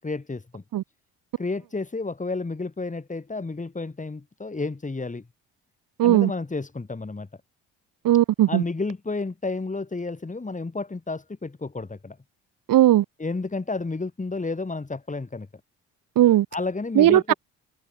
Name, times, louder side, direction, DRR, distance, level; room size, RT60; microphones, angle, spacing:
voice 1, 0.0-0.6 1.4-5.2 6.0-7.3 8.5-12.2 13.2-15.5 16.5-17.3, left 3 dB, 20° left, 6.3 m, -31 dB
voice 2, 6.0-6.3 8.0-8.6 12.7-13.1 16.2-16.5 17.0-17.3, right 13 dB, 65° right, 3.6 m, -17 dB
supercardioid pair, 65°, 35 cm